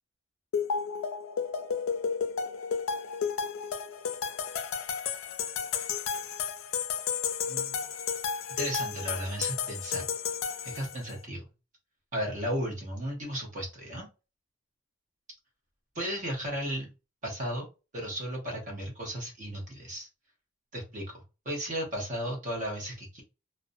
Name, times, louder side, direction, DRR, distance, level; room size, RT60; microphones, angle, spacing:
sound 1, 0.5-11.2, left 6 dB, 80° left, 0.3 m, -32 dB
voice 1, 7.5-7.9 8.6-10.0 10.6-11.4 12.1-14.1 15.9-16.9 17.2-17.7 17.9-20.1 20.7-23.2, equal, 40° right, 0 dB, 0.7 m, -35 dB
2.5 x 2.1 x 2.5 m, 0.29 s
head